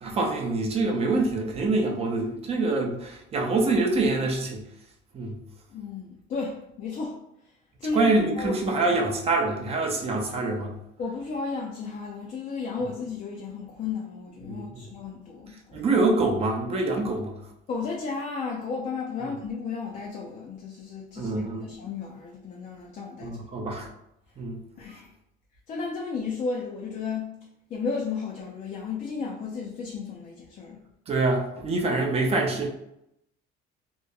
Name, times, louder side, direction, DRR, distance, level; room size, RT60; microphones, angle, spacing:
voice 1, 0.0-4.6 5.1-5.4 7.9-10.7 14.4-14.8 15.7-17.3 21.2-21.7 23.2-23.9 24.4-24.6 31.1-32.7, right 2 dB, 30° right, 1 dB, 0.5 m, -25 dB
voice 2, 5.7-7.2 7.8-8.8 11.0-15.8 17.7-21.3 21.7-23.4 24.8-25.1 25.7-27.4 27.7-30.8, left 4 dB, 35° left, -1 dB, 0.4 m, -33 dB
2.8 x 2.1 x 2.2 m, 0.81 s
cardioid pair, 135°, 21 cm